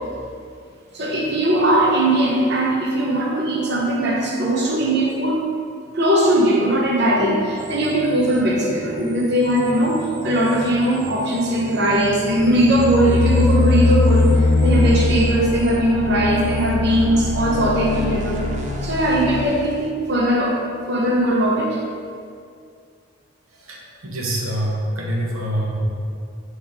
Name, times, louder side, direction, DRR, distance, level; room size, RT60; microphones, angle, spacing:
voice 1, 0.9-5.4 5.9-18.4 18.8-20.6 20.9-21.8, right 1 dB, 50° right, -3 dB, 1.0 m, -19 dB
sound 1, 7.6-19.9, right 2 dB, 35° right, 0.5 m, -37 dB
sound 2, 12.0-19.5, left 3 dB, 55° left, 0.4 m, -21 dB
voice 2, 23.7-25.8, right 1 dB, 80° right, -3 dB, 1.2 m, -25 dB
8.4 x 3.1 x 3.7 m, 2.3 s
head